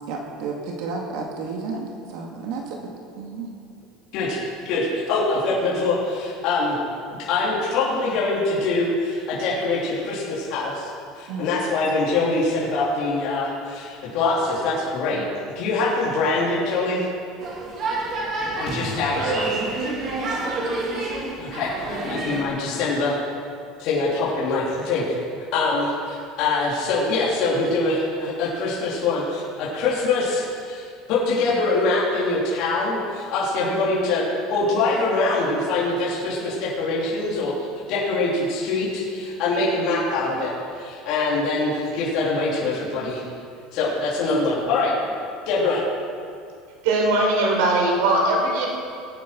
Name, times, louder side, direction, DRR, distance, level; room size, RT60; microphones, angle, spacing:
voice 1, 0.1-3.5 11.3-11.5, right 4 dB, 55° right, 0 dB, 2.1 m, -32 dB
voice 2, 4.7-6.8 7.2-10.9 11.1-17.0 18.6-19.5 21.4-23.2 23.8-25.0 25.5-37.5 37.9-43.2 43.7-44.9 45.5-45.8, left 3 dB, 50° left, -7 dB, 3.8 m, -24 dB
sound 1, 17.4-22.4, right 2 dB, 30° right, 2.6 m, -28 dB
voice 3, 46.8-48.7, right 2 dB, 80° right, 0 dB, 4.7 m, -20 dB
20.5 x 9.4 x 6.2 m, 2.4 s
cardioid pair, 170°, 0 cm